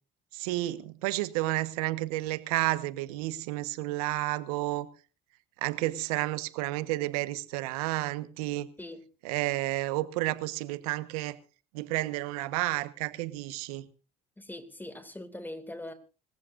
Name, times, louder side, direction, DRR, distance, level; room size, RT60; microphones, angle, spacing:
voice 1, 0.3-4.9 5.6-8.7 9.2-11.4 11.7-13.9, right 18 dB, 85° right, 1.3 m, -31 dB
voice 2, 14.4-15.9, left 1 dB, 10° left, 2.4 m, -41 dB
25.5 x 14.5 x 2.6 m
supercardioid pair, 75°, 19 cm